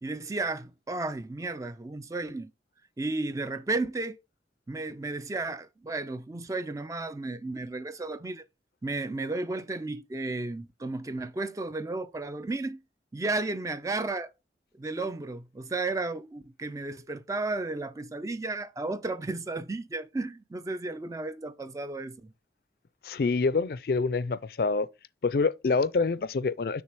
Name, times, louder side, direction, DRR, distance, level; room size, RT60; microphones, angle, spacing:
voice 1, 0.0-2.5 3.0-4.2 4.7-8.4 8.8-12.8 13.1-14.3 14.7-22.3, right 2 dB, 20° right, 0.3 m, -33 dB
voice 2, 23.0-24.9 25.2-26.8, left 4 dB, 55° left, 0.4 m, -26 dB
6.3 x 3.2 x 5.9 m
head